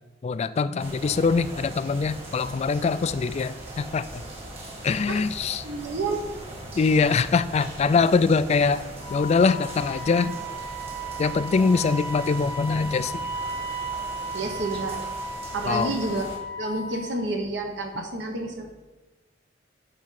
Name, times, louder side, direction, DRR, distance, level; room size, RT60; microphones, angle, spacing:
voice 1, 0.2-4.2 4.8-5.6 6.8-8.8 9.1-10.4 11.2-13.3 15.6-15.9 18.0-18.1, left 4 dB, 35° left, 15 dB, 0.3 m, -23 dB
sound 1, 0.8-16.4, right 1 dB, 35° right, 2.0 m, -40 dB
voice 2, 5.6-6.2 14.3-15.0 15.5-16.3 16.6-18.7, right 2 dB, 70° right, 3 dB, 1.3 m, -29 dB
Wind instrument woodwind instrument, 9.0-17.2, right 1 dB, 50° right, 2.1 m, -35 dB
9.9 x 3.6 x 5.8 m, 1.2 s
head